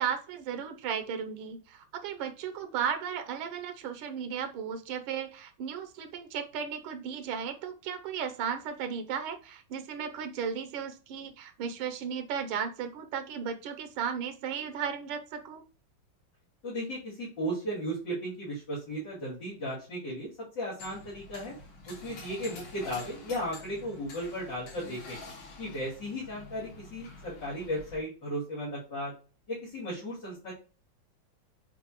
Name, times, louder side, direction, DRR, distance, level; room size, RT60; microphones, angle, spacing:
voice 1, 0.0-15.6, right 7 dB, 90° right, 7 dB, 1.5 m, -35 dB
voice 2, 16.6-20.3 20.5-21.5 21.9-25.2 25.6-29.1 29.5-30.5, equal, 60° left, -9 dB, 3.4 m, -35 dB
sound 1, 20.8-28.0, left 3 dB, 85° left, 2.2 m, -48 dB
8.0 x 4.0 x 2.9 m, 0.36 s
omnidirectional pair, 2.2 m